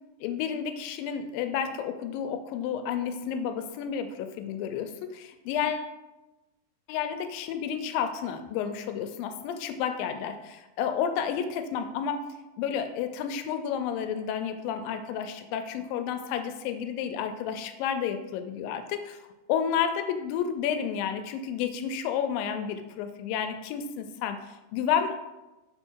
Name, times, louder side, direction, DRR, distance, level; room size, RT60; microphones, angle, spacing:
voice 1, 0.2-5.9 6.9-12.2 12.6-19.2 19.5-25.2, left 8 dB, 80° left, 8 dB, 2.1 m, -31 dB
5.5 x 4.0 x 4.5 m, 1.1 s
omnidirectional pair, 4.3 m